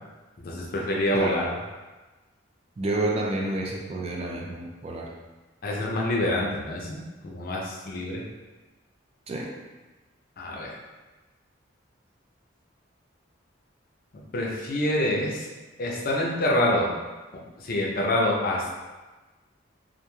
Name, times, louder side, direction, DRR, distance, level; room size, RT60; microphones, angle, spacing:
voice 1, 0.4-1.5 5.6-8.2 10.4-10.8 14.3-15.4 15.8-16.9 17.6-18.7, left 1 dB, 50° left, -2 dB, 0.5 m, -26 dB
voice 2, 1.1-1.5 2.8-5.1 9.3-9.5, right 2 dB, 30° right, -1 dB, 0.3 m, -29 dB
3.0 x 2.4 x 2.2 m, 1.2 s
head